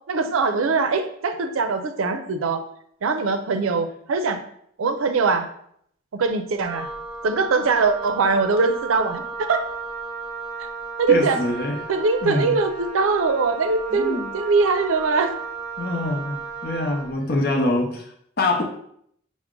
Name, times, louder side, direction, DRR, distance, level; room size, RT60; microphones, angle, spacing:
voice 1, 0.1-2.7 3.0-4.4 4.8-5.5 6.1-6.9 7.2-9.6 10.6-10.7 11.0-11.4 11.9-15.3, right 4 dB, 85° right, 8 dB, 0.5 m, -22 dB
Wind instrument woodwind instrument, 6.6-17.2, right 4 dB, 30° right, 0.8 m, -34 dB
voice 2, 11.1-11.8 12.2-12.6 13.9-14.3 15.8-18.6, left 2 dB, 50° left, 2 dB, 0.6 m, -25 dB
5.9 x 2.1 x 3.7 m, 0.69 s
head